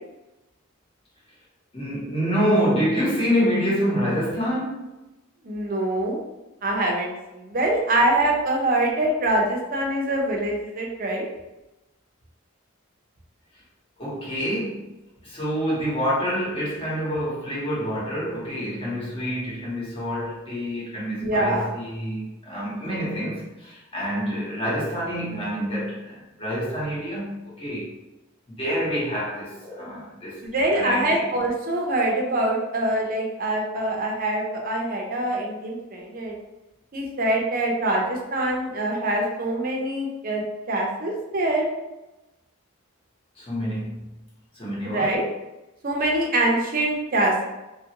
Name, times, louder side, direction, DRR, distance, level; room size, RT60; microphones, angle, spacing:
voice 1, 1.7-4.8 14.0-14.9 15.2-27.9 28.5-30.4 30.7-31.3 43.4-44.1 44.5-45.2, equal, 25° left, -7 dB, 1.1 m, -27 dB
voice 2, 5.4-6.2 6.6-11.3 21.2-21.7 30.4-36.4 36.9-40.4 40.7-41.7 44.8-45.2 45.8-47.4, right 1 dB, 40° right, -1 dB, 0.6 m, -24 dB
2.9 x 2.5 x 2.8 m, 1.0 s
head